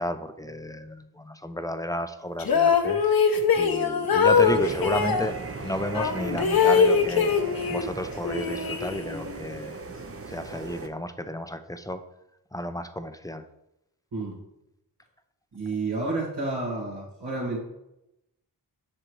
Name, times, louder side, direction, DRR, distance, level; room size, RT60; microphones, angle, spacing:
voice 1, 0.0-3.0 3.6-7.3 7.7-9.8 10.3-12.0 12.5-13.4, equal, 10° left, 9 dB, 0.4 m, -32 dB
sound 1, 2.4-5.3 5.9-7.9 8.2-9.3, left 6 dB, 60° left, 0.7 m, -22 dB
sound 2, 4.3-10.9, right 4 dB, 35° right, 0.7 m, -37 dB
voice 2, 15.5-17.6, right 3 dB, 80° right, -9 dB, 2.1 m, -30 dB
7.6 x 6.4 x 3.1 m, 0.88 s
wide cardioid pair, 65°, 41 cm